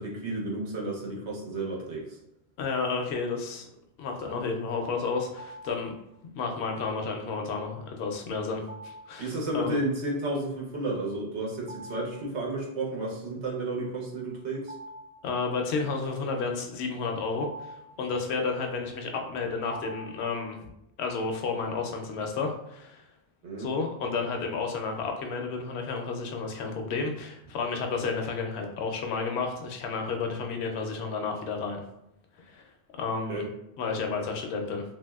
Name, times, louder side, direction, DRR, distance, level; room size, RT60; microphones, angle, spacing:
voice 1, 0.0-2.1 9.2-14.7 23.4-23.7 33.3-33.5, right 2 dB, 85° right, -2 dB, 1.1 m, -32 dB
voice 2, 2.6-3.7 4.0-5.9 6.4-9.8 15.2-20.6 21.0-23.0 23.6-31.8 32.4-32.7 32.9-33.4 33.8-34.8, left 4 dB, 75° left, 3 dB, 0.8 m, -31 dB
sound 1, 5.4-6.0 8.7-9.3 11.6-12.3 12.7-12.8 14.2-15.8 16.7-20.6, right 1 dB, 60° right, 1.0 m, -46 dB
3.0 x 2.6 x 2.2 m, 0.83 s
omnidirectional pair, 1.1 m